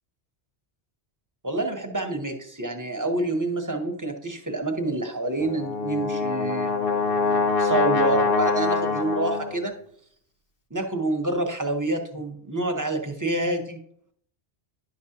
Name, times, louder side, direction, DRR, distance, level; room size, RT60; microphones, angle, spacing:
voice 1, 1.4-9.7 10.7-13.8, right 2 dB, 20° right, 4 dB, 0.7 m, -28 dB
Brass instrument, 5.4-9.7, left 4 dB, 55° left, 0.9 m, -24 dB
10.5 x 5.9 x 2.8 m, 0.65 s
omnidirectional pair, 1.1 m